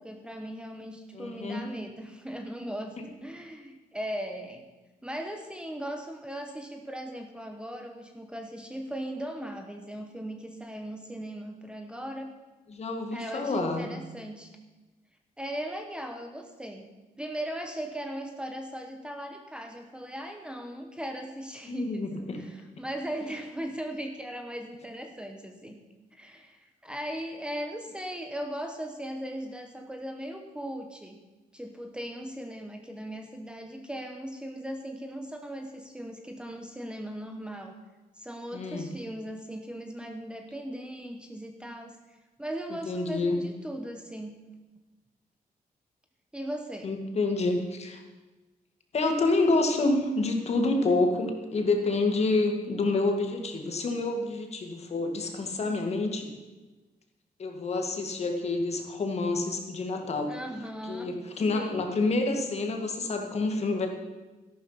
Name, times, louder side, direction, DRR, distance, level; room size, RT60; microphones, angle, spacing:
voice 1, 0.0-2.9 3.2-4.7 5.0-12.3 13.1-14.5 15.4-16.9 17.2-25.8 26.1-31.2 31.5-37.7 38.1-44.3 46.3-46.9 60.3-61.1 61.5-61.9, right 1 dB, 5° right, 4 dB, 1.0 m, -38 dB
voice 2, 1.1-1.6 12.7-13.9 21.7-22.4 38.5-38.9 42.9-43.4 46.8-48.0 48.9-56.3 57.4-60.4 60.9-63.9, left 2 dB, 45° left, 4 dB, 2.0 m, -28 dB
13.0 x 11.5 x 5.7 m, 1.2 s
wide cardioid pair, 150°, 15 cm